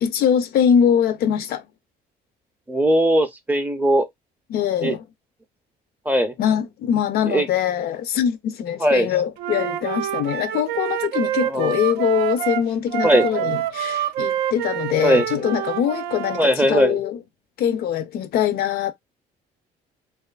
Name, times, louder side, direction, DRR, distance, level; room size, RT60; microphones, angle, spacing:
voice 1, 0.0-1.6 4.5-5.0 6.4-17.2 17.6-18.9, left 8 dB, 65° left, 0.5 m, -22 dB
voice 2, 2.7-4.0 4.8-4.9 6.1-6.3 7.3-7.5 8.8-9.1 11.4-11.7 13.0-13.3 15.0-15.2 16.4-17.0, equal, 10° right, 0.5 m, -19 dB
Wind instrument woodwind instrument, 9.4-16.4, right 11 dB, 80° right, 0.4 m, -26 dB
2.6 x 2.3 x 2.3 m
cardioid pair, 110°, 17 cm